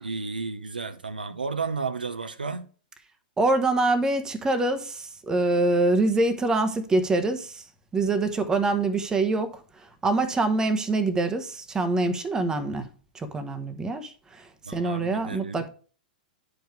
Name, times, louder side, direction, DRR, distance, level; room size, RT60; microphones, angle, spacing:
voice 1, 0.0-2.7 14.6-15.7, right 4 dB, 80° right, 0.7 m, -32 dB
voice 2, 3.4-7.6 7.9-9.6 10.0-12.9 13.1-14.4 14.7-15.7, right 2 dB, 15° right, 1.1 m, -25 dB
10.5 x 4.8 x 4.8 m
figure-of-eight pair, 100°, 5 cm